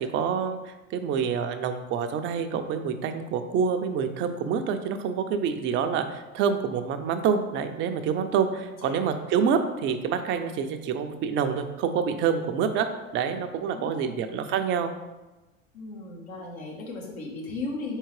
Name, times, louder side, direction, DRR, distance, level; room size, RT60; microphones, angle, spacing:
voice 1, 0.0-12.9 13.1-14.9, right 7 dB, 30° right, 7 dB, 0.4 m, -27 dB
voice 2, 13.7-14.3 15.7-18.0, left 3 dB, 75° left, -1 dB, 1.3 m, -36 dB
4.2 x 3.6 x 3.2 m, 1.1 s
hypercardioid pair, 90°, 42 cm